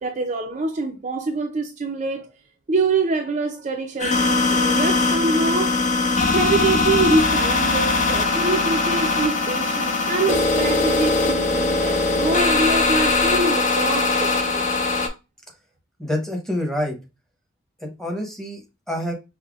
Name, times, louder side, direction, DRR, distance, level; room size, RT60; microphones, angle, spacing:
voice 1, 0.0-2.3 2.7-5.8 6.3-14.8, right 3 dB, 40° right, 0.4 m, -25 dB
sound 1, 4.0-15.1, left 3 dB, 40° left, 0.6 m, -20 dB
voice 2, 16.0-17.0 17.8-19.1, equal, 5° left, 0.9 m, -27 dB
5.4 x 2.1 x 2.3 m
head